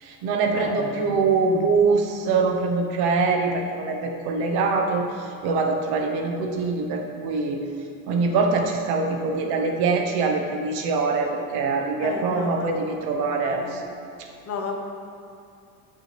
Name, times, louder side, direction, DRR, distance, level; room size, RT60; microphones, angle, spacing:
voice 1, 0.0-5.1 5.4-7.6 8.1-13.8, right 4 dB, 65° right, 3 dB, 1.2 m, -23 dB
voice 2, 0.5-1.7 12.0-12.9 13.5-13.8 14.5-14.8, left 4 dB, 40° left, 2 dB, 1.2 m, -33 dB
15.5 x 6.0 x 3.4 m, 2.5 s
cardioid pair, 125°, 40 cm